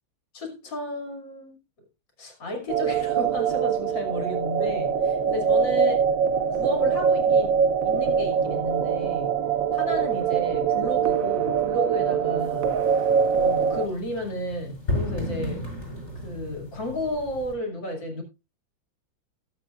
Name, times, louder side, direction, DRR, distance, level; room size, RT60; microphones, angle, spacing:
voice 1, 0.3-1.6 2.2-5.9 6.5-7.6 7.8-9.3 9.7-13.1 13.3-15.7 16.1-18.2, left 1 dB, 65° left, 3.2 m, -33 dB
sound 1, 2.7-13.9, right 7 dB, 60° right, 0.9 m, -23 dB
sound 2, 12.4-17.5, left 2 dB, 35° left, 6.4 m, -34 dB
20.5 x 7.7 x 2.4 m
omnidirectional pair, 2.1 m